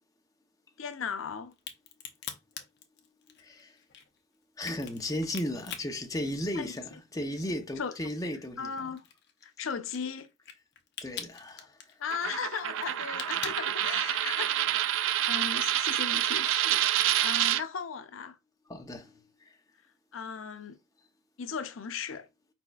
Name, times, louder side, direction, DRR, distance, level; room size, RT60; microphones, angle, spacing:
voice 1, 0.8-1.5 6.6-6.7 7.8-7.9 8.6-9.0 9.4-10.3 12.0-14.5 15.3-16.8 17.2-18.4 20.1-20.8 21.4-22.3, left 6 dB, 90° left, 0.6 m, -36 dB
Crack, 1.5-7.0 7.4-14.4, left 8 dB, 55° left, 0.8 m, -44 dB
voice 2, 3.4-3.8 4.6-9.0 11.0-12.0 13.9-14.2 14.9-15.3 18.7-19.6, left 1 dB, 20° left, 0.7 m, -36 dB
Coin (dropping), 12.1-17.6, right 12 dB, 75° right, 0.3 m, -28 dB
5.1 x 4.3 x 2.3 m
head